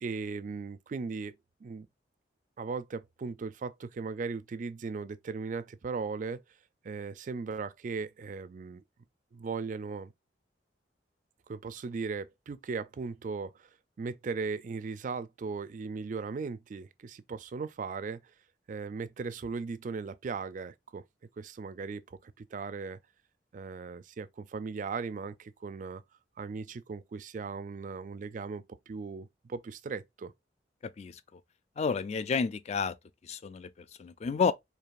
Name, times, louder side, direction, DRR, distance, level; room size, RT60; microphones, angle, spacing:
voice 1, 0.0-1.3 1.6-1.9 2.6-6.4 6.8-8.8 9.3-10.1 11.5-13.7 14.0-18.2 18.7-21.0 21.4-23.0 23.5-26.0 26.4-30.3, right 4 dB, 45° right, 0.4 m, -38 dB
voice 2, 31.8-32.9 33.3-33.7 34.0-34.5, left 5 dB, 40° left, 0.3 m, -30 dB
4.7 x 2.8 x 2.4 m
head